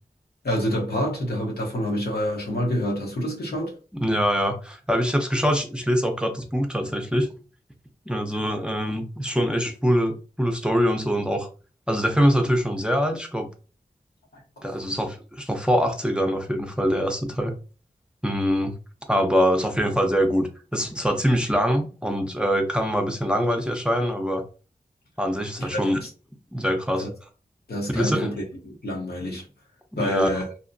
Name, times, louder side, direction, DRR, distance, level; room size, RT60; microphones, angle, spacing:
voice 1, 0.4-3.7 25.6-26.1 27.0-27.1 27.7-29.4 29.9-30.5, equal, 75° left, 0.9 m, -27 dB
voice 2, 3.9-7.3 8.1-11.5 11.9-13.5 14.6-17.5 18.2-18.7 19.1-24.4 25.2-26.0 26.5-27.1 27.9-28.3 29.9-30.3, equal, 5° right, 0.5 m, -24 dB
2.8 x 2.1 x 2.6 m
cardioid pair, 40°, 16 cm